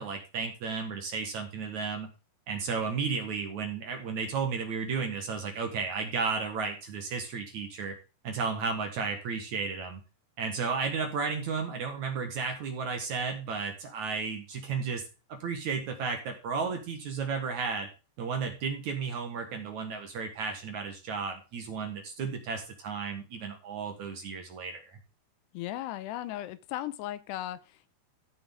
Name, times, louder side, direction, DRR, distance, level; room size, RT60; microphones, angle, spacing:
voice 1, 0.0-2.1 2.5-8.0 8.2-10.0 10.4-15.0 15.3-17.9 18.2-25.0, right 5 dB, 55° right, 4 dB, 2.4 m, -33 dB
voice 2, 25.5-27.9, left 13 dB, 85° left, 14 dB, 2.7 m, -37 dB
14.0 x 6.6 x 3.6 m, 0.32 s
omnidirectional pair, 4.9 m